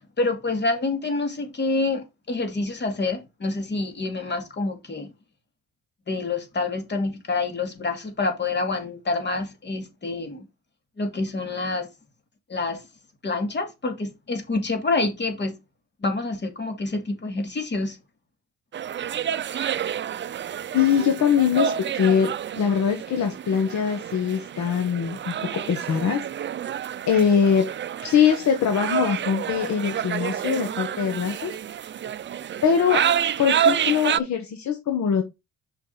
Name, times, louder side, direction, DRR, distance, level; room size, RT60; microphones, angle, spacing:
voice 1, 0.2-5.1 6.1-10.4 11.0-11.9 12.5-12.8 13.2-15.6 16.0-18.0, left 3 dB, 35° left, 2.4 m, -27 dB
sound 1, 18.7-34.2, right 9 dB, 40° right, 0.5 m, -29 dB
voice 2, 20.7-26.2 27.1-27.6 28.0-31.6 32.6-33.0 33.4-35.2, left 7 dB, 65° left, 1.4 m, -22 dB
6.3 x 5.3 x 4.0 m
cardioid pair, 90°, 30 cm